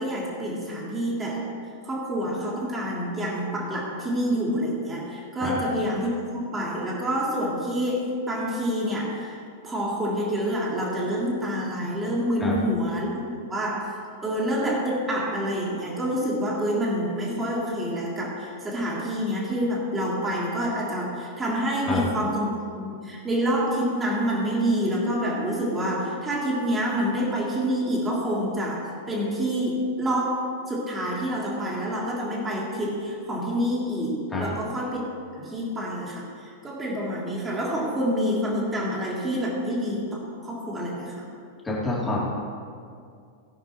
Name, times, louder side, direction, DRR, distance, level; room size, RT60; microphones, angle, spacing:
voice 1, 0.0-1.4 1.8-9.4 9.6-30.4 30.7-35.0 35.3-41.3, equal, 15° right, -4 dB, 3.3 m, -27 dB
voice 2, 41.6-42.2, left 2 dB, 10° left, -6 dB, 3.3 m, -27 dB
19.0 x 10.0 x 3.2 m, 2.3 s
figure-of-eight pair, 95°, 0 cm